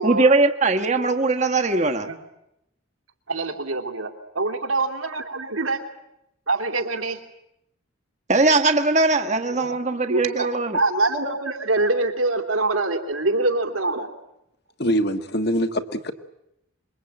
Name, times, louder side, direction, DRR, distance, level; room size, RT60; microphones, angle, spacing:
voice 1, 0.0-2.1 8.3-10.8, right 3 dB, 35° right, 6 dB, 1.2 m, -20 dB
voice 2, 3.3-5.8 6.5-7.2 9.5-10.5 10.7-14.1, right 2 dB, 85° right, 5 dB, 3.1 m, -25 dB
voice 3, 14.8-16.1, equal, 50° left, 7 dB, 1.6 m, -23 dB
26.5 x 23.0 x 8.9 m, 0.83 s
head